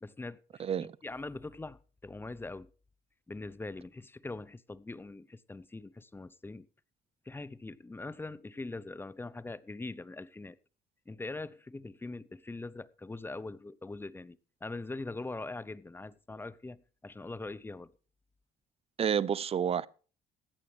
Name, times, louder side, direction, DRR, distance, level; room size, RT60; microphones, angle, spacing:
voice 1, 0.0-2.7 3.3-6.7 7.3-10.6 11.1-17.9, left 2 dB, 15° left, 0.6 m, -42 dB
voice 2, 0.6-0.9 19.0-19.9, right 8 dB, 35° right, 0.7 m, -29 dB
16.0 x 11.5 x 3.3 m
cardioid pair, 110°, 17 cm